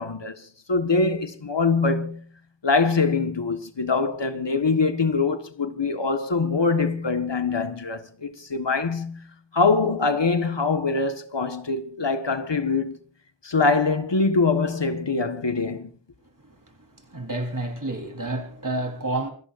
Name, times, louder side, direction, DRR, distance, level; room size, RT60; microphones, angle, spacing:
voice 1, 0.0-2.2 2.6-9.2 9.5-13.0 13.4-15.9, left 4 dB, 70° left, 1.6 m, -23 dB
voice 2, 17.0-19.3, right 2 dB, 45° right, 4.0 m, -30 dB
27.5 x 18.5 x 2.6 m
wide cardioid pair, 45°, 45 cm